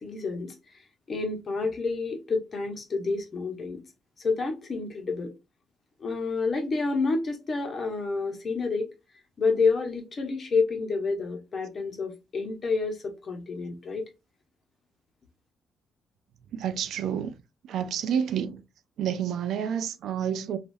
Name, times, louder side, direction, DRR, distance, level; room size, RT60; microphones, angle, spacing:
voice 1, 0.0-3.8 4.2-5.3 6.0-8.9 9.4-14.0, left 4 dB, 40° left, 1.0 m, -29 dB
voice 2, 16.5-17.3 17.7-18.6 19.0-20.6, right 8 dB, 75° right, 0.4 m, -29 dB
3.1 x 2.4 x 2.6 m
cardioid pair, 90°, 0 cm